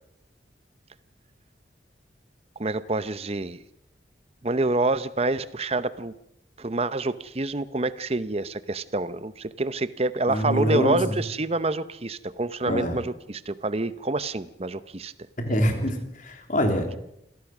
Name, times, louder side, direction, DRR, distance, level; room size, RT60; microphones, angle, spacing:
voice 1, 2.6-3.6 4.4-6.1 6.6-15.1, right 2 dB, 35° right, 15 dB, 0.8 m, -27 dB
voice 2, 10.3-11.2 12.7-13.0 15.4-16.9, equal, 45° left, 4 dB, 3.4 m, -25 dB
26.0 x 17.0 x 6.1 m, 0.79 s
head